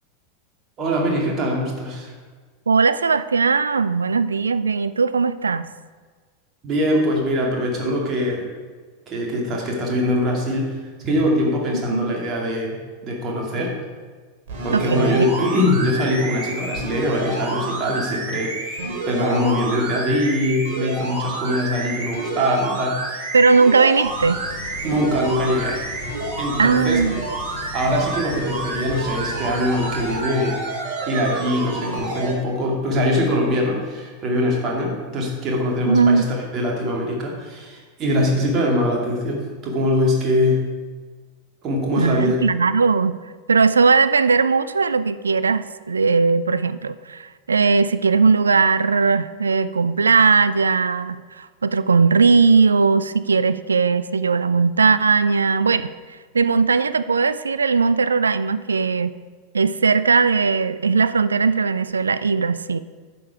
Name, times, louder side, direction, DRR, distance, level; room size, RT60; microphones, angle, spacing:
voice 1, 0.8-2.1 6.6-8.4 9.1-10.7 11.0-12.8 13.0-13.7 14.6-23.2 24.8-25.8 26.4-27.0 27.7-30.6 31.1-40.6 41.6-42.4, left 1 dB, 35° right, -2 dB, 2.5 m, -22 dB
voice 2, 2.7-5.7 11.7-12.1 14.7-15.3 23.3-24.4 26.6-27.2 35.8-36.3 42.0-43.2 43.5-55.9 56.3-59.2 59.5-62.8, right 4 dB, 75° right, 15 dB, 0.3 m, -18 dB
sound 1, 14.5-32.3 32.9-33.0, right 3 dB, 55° right, 2.8 m, -29 dB
sound 2, 24.0-30.2, left 5 dB, 55° left, 1.7 m, -37 dB
10.0 x 6.8 x 4.7 m, 1.5 s
figure-of-eight pair, 85°, 0 cm